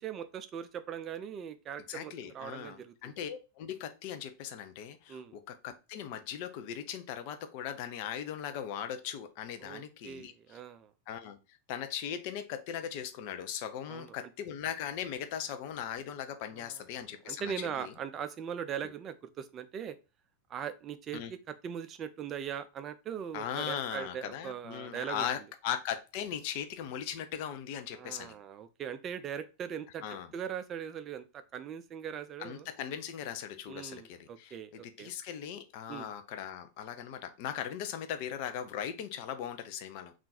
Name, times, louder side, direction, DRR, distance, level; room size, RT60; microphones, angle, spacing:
voice 1, 0.0-3.1 5.1-5.3 9.6-10.9 13.9-14.3 16.5-16.8 17.3-20.0 20.5-25.3 27.9-30.1 30.3-32.7 33.7-35.1 35.9-36.1, right 8 dB, 30° right, 0.4 m, -40 dB
voice 2, 1.9-10.3 11.1-11.4 11.7-17.9 21.1-21.3 23.3-28.3 30.0-30.3 32.4-40.1, left 9 dB, 45° left, 0.5 m, -39 dB
3.7 x 2.5 x 4.1 m
figure-of-eight pair, 90°, 0 cm